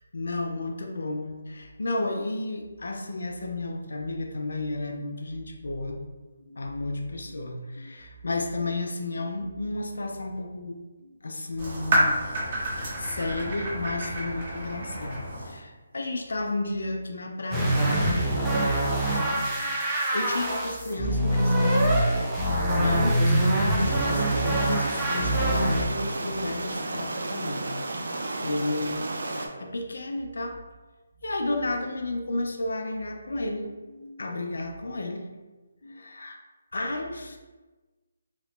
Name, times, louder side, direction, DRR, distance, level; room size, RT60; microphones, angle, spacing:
voice 1, 0.1-6.0 6.4-12.1 12.8-27.7 28.1-30.6 31.2-35.2 35.8-36.4 36.7-37.4, left 2 dB, 80° left, 3 dB, 0.4 m, -33 dB
sound 1, 11.6-15.6, right 1 dB, 40° right, 0.9 m, -29 dB
sound 2, 17.5-25.8, right 1 dB, 10° right, 0.4 m, -24 dB
sound 3, 23.8-29.5, right 2 dB, 70° right, 0.4 m, -33 dB
2.9 x 2.1 x 3.0 m, 1.2 s
hypercardioid pair, 165°, 0 cm